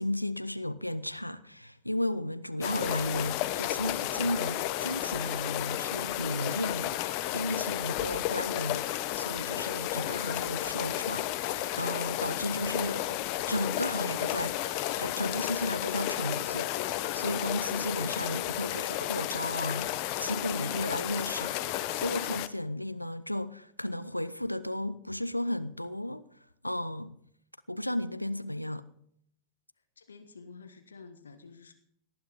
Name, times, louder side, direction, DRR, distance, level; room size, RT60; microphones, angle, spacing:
voice 1, 0.0-13.2 13.5-27.2 27.7-28.8, left 1 dB, 90° left, 0.6 m, -34 dB
sound 1, 2.6-22.5, left 14 dB, 45° left, 0.9 m, -32 dB
voice 2, 30.0-31.7, left 4 dB, 70° left, 1.4 m, -50 dB
18.5 x 10.5 x 5.3 m
figure-of-eight pair, 90°, 0 cm